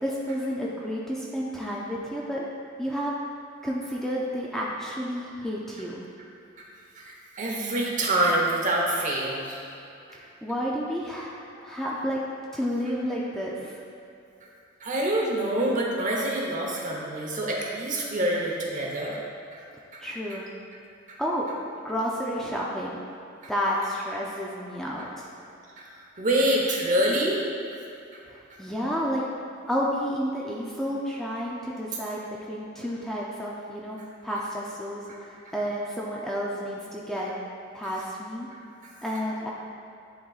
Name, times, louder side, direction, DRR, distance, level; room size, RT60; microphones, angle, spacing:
voice 1, 0.0-2.5 2.8-3.1 3.6-6.0 10.1-12.2 12.5-13.8 20.0-20.5 21.2-21.5 21.8-23.0 23.5-25.3 28.3-29.2 29.7-37.3 37.7-38.5 39.0-39.5, equal, ahead, -5 dB, 0.4 m, -31 dB
voice 2, 6.9-9.8 14.4-14.5 14.8-19.2 19.5-19.6 19.9-20.0 21.1-21.2 23.4-23.5 25.8-25.9 26.2-27.8 28.5-28.6 38.8-38.9, right 1 dB, 40° right, -2 dB, 0.9 m, -26 dB
10.0 x 3.9 x 2.4 m, 2.6 s
head